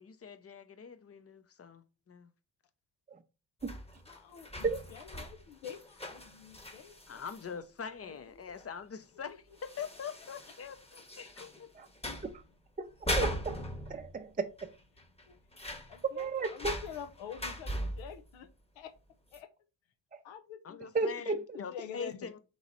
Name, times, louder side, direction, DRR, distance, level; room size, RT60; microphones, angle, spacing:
voice 1, 0.0-2.3 7.1-11.7 20.6-22.4, left 6 dB, 30° left, 0.8 m, -44 dB
sound 1, 3.6-7.5 8.6-8.7 9.0-9.1 9.6-11.6 12.0-12.5 12.9-14.3 14.6-14.7 15.0-18.2 19.3-19.4, equal, 15° left, 1.1 m, -40 dB
voice 2, 4.1-7.2 8.0-8.3 9.3-9.4 15.3-15.4 15.7-18.5 18.8-18.9 19.3-19.5 20.2-20.9 21.3-22.4, left 8 dB, 80° left, 0.9 m, -47 dB
voice 3, 13.2-13.6 13.9-14.7 16.0-16.7 20.1-20.2 20.9-21.4, right 4 dB, 20° right, 0.6 m, -33 dB
3.9 x 3.2 x 4.0 m
supercardioid pair, 60°, 45 cm